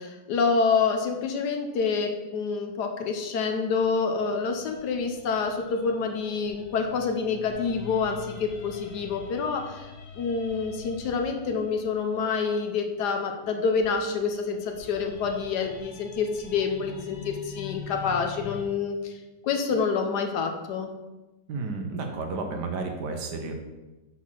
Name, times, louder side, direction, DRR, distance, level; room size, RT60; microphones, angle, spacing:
voice 1, 0.0-9.9 10.1-19.2 19.4-20.9, left 5 dB, 70° left, 4 dB, 1.3 m, -27 dB
sound 1, 3.8-12.9 13.8-18.6, left 6 dB, 50° left, 1.5 m, -45 dB
voice 2, 21.5-23.5, right 3 dB, 70° right, 4 dB, 1.5 m, -32 dB
6.1 x 4.2 x 5.8 m, 1.1 s
omnidirectional pair, 2.0 m